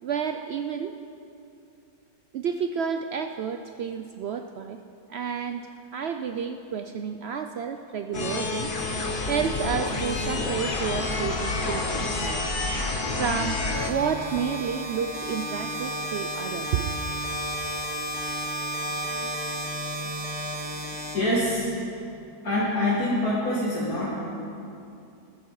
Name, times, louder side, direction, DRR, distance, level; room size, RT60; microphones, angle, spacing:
voice 1, 0.0-1.0 2.3-4.8 5.1-5.7 5.9-8.7 9.0-12.4 13.1-13.6 13.9-16.9, right 7 dB, 80° right, 7 dB, 0.5 m, -30 dB
sound 1, 8.1-13.9, left 3 dB, 40° left, 1.0 m, -28 dB
sound 2, 13.7-21.8, right 1 dB, 5° left, 2.2 m, -33 dB
voice 2, 18.8-19.4 19.6-19.7 20.0-20.2 20.7-21.8 22.4-24.2, left 1 dB, 65° left, -7 dB, 2.3 m, -27 dB
20.0 x 10.5 x 4.7 m, 2.6 s
omnidirectional pair, 1.7 m